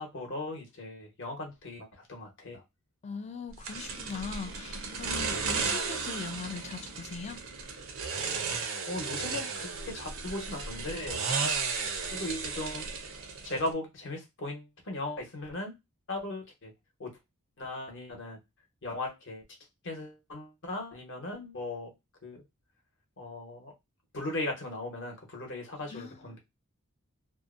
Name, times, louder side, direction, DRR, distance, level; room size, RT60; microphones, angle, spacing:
voice 1, 0.0-2.6 5.3-5.4 8.5-11.3 12.1-12.9 13.4-15.7 16.1-16.7 17.0-17.1 17.6-18.4 18.8-19.4 19.8-21.9 22.2-22.4 23.2-23.7 24.1-26.4, left 2 dB, 55° left, 0.9 m, -38 dB
voice 2, 3.0-7.4 25.9-26.4, left 5 dB, 30° left, 0.3 m, -40 dB
sound 1, 3.6-13.7, right 5 dB, 60° right, 0.6 m, -34 dB
2.6 x 2.0 x 2.4 m
head